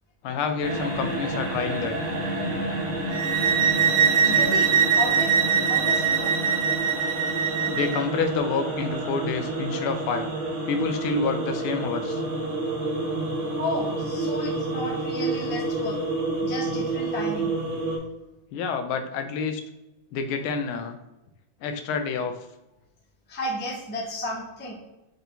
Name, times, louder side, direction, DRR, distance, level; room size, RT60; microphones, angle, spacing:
voice 1, 0.2-2.0 7.7-10.3 10.7-12.2 18.5-19.6 20.1-21.0 21.6-22.4, left 5 dB, 85° left, 7 dB, 1.5 m, -28 dB
sound 1, 0.6-18.0, right 2 dB, 50° right, 1.0 m, -29 dB
sound 2, 3.1-8.0, right 8 dB, 75° right, 0.9 m, -22 dB
voice 2, 4.2-6.3 13.6-16.0 16.4-17.5 23.3-24.7, left 1 dB, 15° left, -4 dB, 0.4 m, -33 dB
4.5 x 4.3 x 2.6 m, 0.96 s
omnidirectional pair, 2.3 m